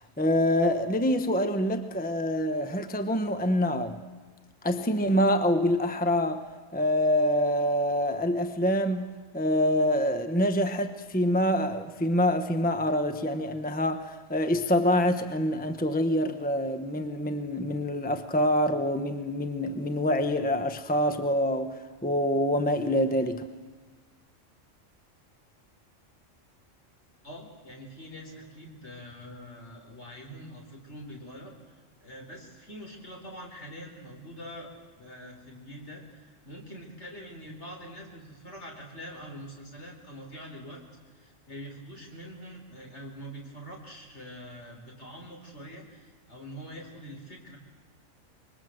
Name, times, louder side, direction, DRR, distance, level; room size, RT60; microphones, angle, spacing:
voice 1, 0.2-4.0 4.6-6.5 6.7-23.5, equal, 10° left, 0.9 m, -26 dB
voice 2, 27.2-31.5 32.0-40.8 41.1-47.6, equal, 60° left, 4.4 m, -44 dB
25.5 x 22.0 x 7.8 m
omnidirectional pair, 1.3 m